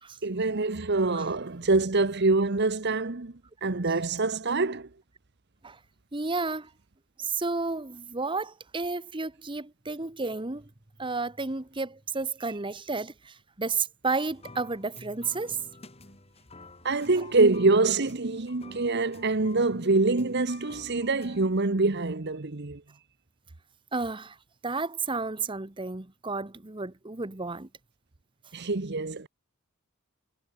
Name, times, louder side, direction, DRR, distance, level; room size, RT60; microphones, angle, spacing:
voice 1, 0.2-3.3 3.6-4.9 16.8-22.8 28.5-29.3, right 3 dB, 50° right, 1.1 m, -25 dB
voice 2, 6.1-6.7 7.2-10.7 11.0-15.6 23.9-24.4 24.6-27.7, right 4 dB, 25° right, 1.1 m, -32 dB
sound 1, 14.2-21.5, left 2 dB, 30° left, 3.8 m, -50 dB
head